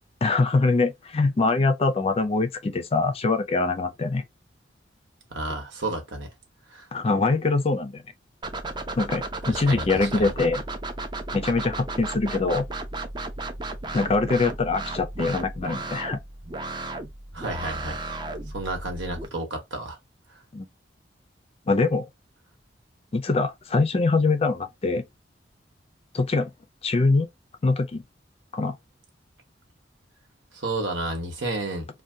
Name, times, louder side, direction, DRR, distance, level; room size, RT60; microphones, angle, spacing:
voice 1, 0.2-4.2 6.9-8.0 9.0-10.6 11.3-12.7 13.9-16.2 20.5-20.7 21.7-22.1 23.1-25.0 26.1-26.5 26.8-27.3 27.6-28.0 28.5-28.8, left 3 dB, 35° left, 0.4 m, -23 dB
voice 2, 5.3-6.3 6.7-6.9 9.5-10.3 17.3-18.2 18.5-20.0 30.5-31.9, right 2 dB, 90° right, 1.2 m, -31 dB
sound 1, 8.4-19.3, right 2 dB, 25° right, 0.5 m, -34 dB
2.7 x 2.2 x 3.3 m
head